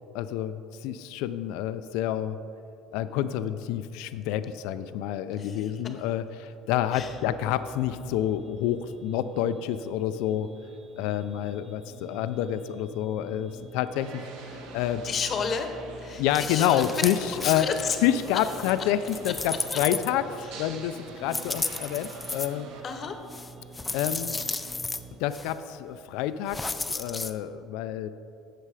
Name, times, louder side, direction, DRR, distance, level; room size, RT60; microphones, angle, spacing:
voice 1, 0.1-2.4 2.9-10.5 11.0-14.2 14.5-15.0 16.2-17.7 18.0-20.2 20.5-22.7 23.9-24.4 25.2-26.6 26.9-28.1, left 11 dB, 80° left, 12 dB, 0.4 m, -28 dB
voice 2, 5.4-5.7 6.9-7.1 15.0-15.7 16.0-17.0 17.3-18.0 19.7-19.8 20.4-20.5 22.8-23.2, left 6 dB, 30° left, 6 dB, 0.9 m, -31 dB
sound 1, 6.9-25.2, right 3 dB, 20° right, 1.4 m, -48 dB
sound 2, 14.0-22.8, right 3 dB, 75° right, 1.4 m, -46 dB
sound 3, 16.3-17.4 17.8-20.5 21.3-22.5 23.3-25.0 25.3-25.5 26.5-27.3, left 3 dB, 10° left, 0.4 m, -34 dB
15.5 x 6.8 x 4.9 m, 2.7 s
cardioid pair, 175°, 0 cm